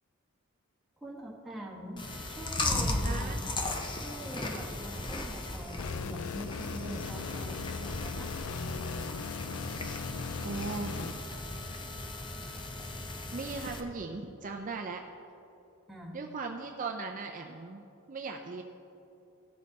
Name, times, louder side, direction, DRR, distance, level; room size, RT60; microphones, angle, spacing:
voice 1, 1.0-2.0 2.3-3.4 4.0-8.3 15.9-16.2, right 1 dB, ahead, -5 dB, 1.6 m, -44 dB
Chewing mastication, 2.0-13.8, left 2 dB, 20° left, 0.7 m, -36 dB
voice 2, 3.0-3.4 6.8-7.1 10.4-11.2 13.3-15.0 16.1-17.8 18.1-18.6, right 4 dB, 40° right, 3 dB, 0.5 m, -38 dB
sound 1, 5.8-11.1, left 5 dB, 75° left, 0.4 m, -39 dB
16.0 x 6.5 x 4.1 m, 3.0 s
head